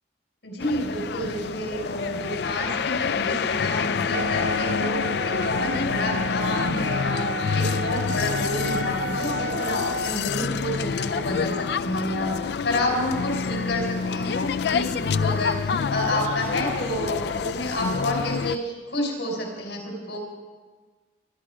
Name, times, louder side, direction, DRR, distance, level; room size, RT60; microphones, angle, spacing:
voice 1, 0.4-4.9 5.2-20.2, left 1 dB, 85° left, 1 dB, 4.7 m, -29 dB
sound 1, 0.6-18.6, left 6 dB, 65° left, 0.4 m, -27 dB
Wind instrument woodwind instrument, 4.1-10.2, right 1 dB, 70° right, 0.5 m, -32 dB
24.0 x 11.5 x 4.9 m, 1.4 s
head